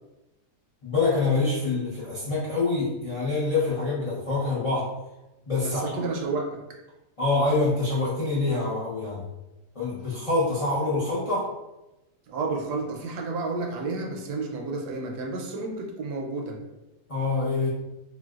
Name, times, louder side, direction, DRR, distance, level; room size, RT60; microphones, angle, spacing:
voice 1, 0.8-4.9 5.5-6.1 7.2-9.3 9.7-11.5 17.1-17.7, left 3 dB, 65° left, -9 dB, 0.3 m, -26 dB
voice 2, 5.6-6.6 12.3-16.6, right 3 dB, 75° right, 1 dB, 1.0 m, -31 dB
3.8 x 2.2 x 2.3 m, 0.99 s
omnidirectional pair, 1.8 m